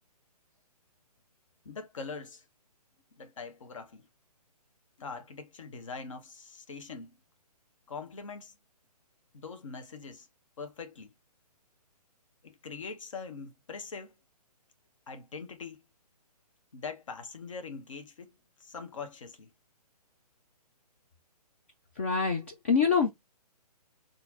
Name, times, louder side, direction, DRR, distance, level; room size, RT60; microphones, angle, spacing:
voice 1, 1.6-2.4 3.1-4.1 5.0-7.1 7.9-8.5 9.3-10.3 10.6-11.1 12.4-14.1 15.1-15.8 16.7-18.3 18.6-19.5, left 5 dB, 50° left, 0.9 m, -42 dB
voice 2, 22.0-23.1, left 5 dB, 20° left, 0.3 m, -25 dB
4.2 x 2.5 x 3.9 m
figure-of-eight pair, 130°, 21 cm